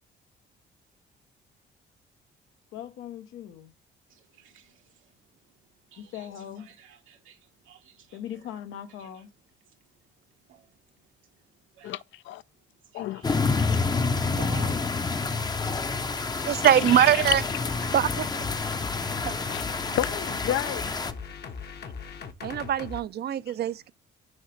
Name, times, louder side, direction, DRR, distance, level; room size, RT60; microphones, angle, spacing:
voice 1, 2.7-3.7 6.0-6.7 8.1-9.3 16.8-17.3, left 10 dB, 90° left, 0.8 m, -40 dB
voice 2, 4.1-8.5 8.9-9.3 9.6-12.0 12.5-16.7 18.6-19.5, right 9 dB, 90° right, 1.4 m, -50 dB
voice 3, 11.8-12.4 12.9-13.6 16.6-17.3 20.0-20.8 23.5-23.6, left 12 dB, 70° left, 0.4 m, -31 dB
sound 1, 13.2-21.1, left 4 dB, 20° left, 0.5 m, -28 dB
voice 4, 16.5-17.4 17.9-18.3 22.4-23.9, right 10 dB, 55° right, 0.4 m, -22 dB
sound 2, 17.2-23.0, left 6 dB, 55° left, 0.9 m, -39 dB
6.4 x 4.9 x 3.1 m
cardioid pair, 90°, 20 cm